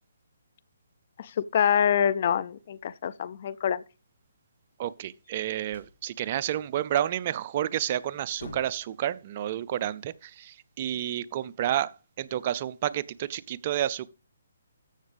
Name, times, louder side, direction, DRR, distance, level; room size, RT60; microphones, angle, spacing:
voice 1, 1.2-3.8, left 8 dB, 45° left, 0.5 m, -26 dB
voice 2, 4.8-11.9 12.2-14.1, right 11 dB, 40° right, 0.5 m, -30 dB
sound 1, 5.2-6.0 7.6-7.8 8.1-9.0, left 2 dB, 65° left, 3.8 m, -46 dB
14.0 x 7.2 x 3.4 m
hypercardioid pair, 150°, 0 cm